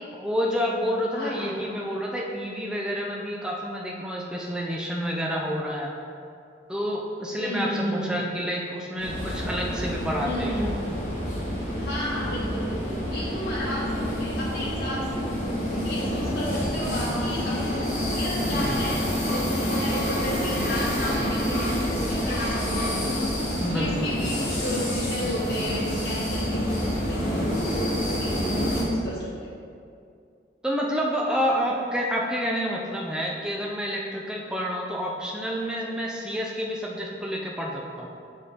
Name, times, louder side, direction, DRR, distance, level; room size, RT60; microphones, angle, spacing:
voice 1, 0.2-5.9 6.7-10.7 23.6-24.5 30.6-38.1, equal, 5° right, -2 dB, 0.4 m, -29 dB
voice 2, 1.1-1.7 7.4-8.2 10.2-10.9 11.8-15.3 15.7-19.0 19.3-23.3 23.6-29.6, equal, 75° left, -8 dB, 1.2 m, -33 dB
sound 1, 9.0-28.8, equal, 45° left, 1.3 m, -28 dB
7.6 x 4.1 x 3.6 m, 2.4 s
head